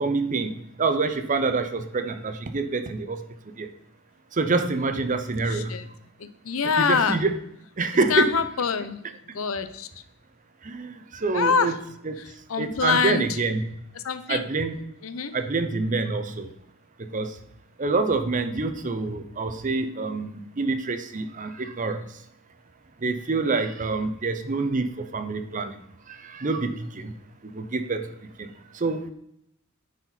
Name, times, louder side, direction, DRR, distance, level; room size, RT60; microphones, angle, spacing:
voice 1, 0.0-3.2 3.6-3.7 4.3-5.7 6.8-7.4 7.8-8.4 10.6-11.8 12.0-12.2 12.6-13.7 14.3-14.8 15.3-16.5 17.0-17.4 17.8-22.1 23.0-25.8 26.1-27.1 27.5-28.1 28.4-29.1, right 3 dB, 40° right, 8 dB, 0.7 m, -26 dB
voice 2, 5.5-5.8 6.2-7.2 8.1-9.0 9.3-9.9 11.3-11.7 12.5-13.3 14.0-14.4 15.0-15.3, left 6 dB, 85° left, 12 dB, 0.7 m, -24 dB
10.0 x 4.5 x 4.0 m, 0.77 s
head